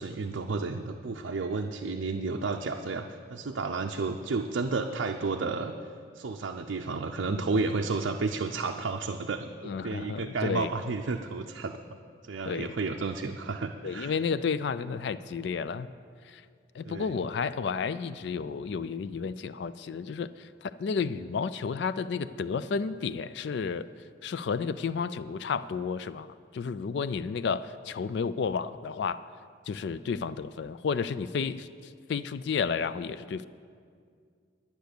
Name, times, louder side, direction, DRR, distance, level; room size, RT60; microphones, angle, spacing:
voice 1, 0.0-5.7 6.1-11.8 12.3-14.1 16.8-17.1, right 3 dB, 75° right, 3 dB, 0.5 m, -32 dB
voice 2, 9.6-10.7 12.5-12.8 13.8-15.9 16.2-16.4 16.7-23.9 24.2-26.3 26.5-29.2 29.7-33.5, left 5 dB, 60° left, 15 dB, 0.3 m, -32 dB
10.5 x 10.5 x 6.7 m, 2.2 s
head